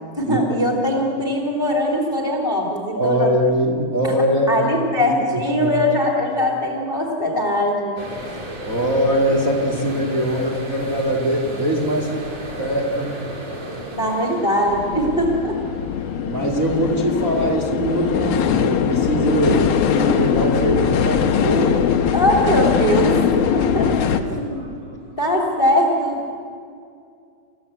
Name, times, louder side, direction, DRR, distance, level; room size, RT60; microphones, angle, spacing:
voice 1, 0.1-3.3 4.5-8.1 13.9-15.6 22.1-23.2 23.5-23.9 24.3-24.7 25.2-26.2, left 1 dB, 15° left, 1 dB, 2.5 m, -21 dB
voice 2, 2.9-5.1 5.6-5.8 8.6-12.1 12.6-13.1 16.2-21.8 24.3-24.4, right 1 dB, 25° right, -1 dB, 2.6 m, -22 dB
sound 1, 8.0-22.7 23.1-23.5 23.9-25.2, right 1 dB, 40° right, 4.7 m, -36 dB
sound 2, 14.7-24.2, left 8 dB, 75° left, 3.0 m, -21 dB
29.0 x 16.0 x 8.3 m, 2.4 s
omnidirectional pair, 4.5 m